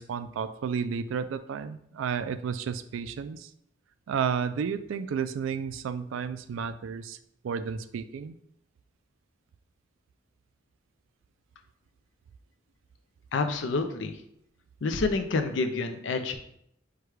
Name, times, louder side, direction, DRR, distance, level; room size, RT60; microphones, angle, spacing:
voice 1, 0.0-3.5 4.1-7.2 7.4-8.3, right 6 dB, 90° right, 12 dB, 0.3 m, -32 dB
voice 2, 13.3-14.1 14.8-16.4, left 3 dB, 70° left, 7 dB, 0.5 m, -28 dB
4.7 x 2.3 x 4.7 m, 0.72 s
head